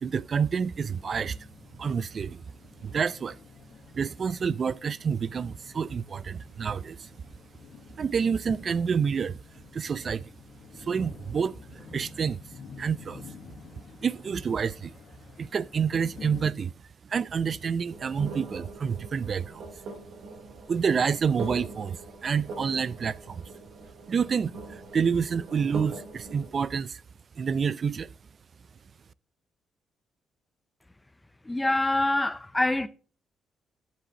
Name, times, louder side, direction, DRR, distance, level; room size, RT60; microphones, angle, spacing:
voice 1, 0.0-1.4 1.8-2.4 2.8-3.4 3.9-7.1 8.0-9.4 9.7-10.3 10.8-12.4 12.8-13.2 14.0-14.9 15.4-16.7 17.0-19.7 20.7-23.4 24.1-27.0 27.4-28.1, right 6 dB, 45° right, 0.4 m, -28 dB
sound 1, 0.7-16.5, left 5 dB, 60° left, 1.4 m, -49 dB
sound 2, 17.9-26.5, right 3 dB, 75° right, 3.4 m, -42 dB
voice 2, 31.4-32.9, left 2 dB, 15° left, 0.7 m, -25 dB
13.0 x 7.5 x 2.9 m
cardioid pair, 90°, 0 cm